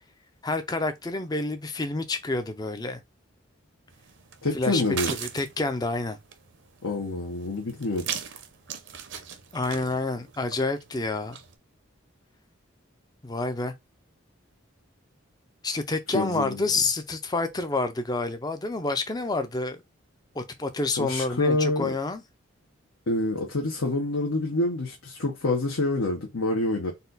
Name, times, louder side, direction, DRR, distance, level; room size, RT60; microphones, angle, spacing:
voice 1, 0.4-3.0 4.5-6.2 9.5-11.4 13.2-13.7 15.6-19.8 20.4-22.2, left 3 dB, 20° left, 0.4 m, -28 dB
sound 1, 3.9-11.6, right 7 dB, 60° right, 0.6 m, -39 dB
voice 2, 4.4-5.1 6.8-8.1 16.1-16.6 21.0-21.9 23.1-26.9, left 2 dB, 80° left, 1.0 m, -27 dB
4.1 x 2.3 x 3.9 m
head